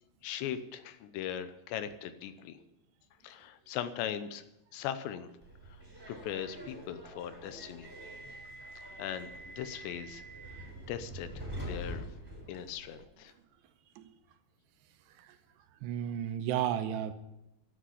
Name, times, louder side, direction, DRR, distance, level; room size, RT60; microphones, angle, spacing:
voice 1, 0.2-2.6 3.2-4.4 4.7-5.3 6.1-7.9 9.0-11.3 11.6-12.1 12.5-13.3, left 10 dB, 80° left, 11 dB, 3.0 m, -39 dB
Subway metro underground, 5.4-13.0, equal, 5° right, 3.8 m, -45 dB
voice 2, 15.8-17.1, right 10 dB, 85° right, 9 dB, 2.9 m, -33 dB
12.0 x 7.7 x 9.9 m, 0.91 s
omnidirectional pair, 5.0 m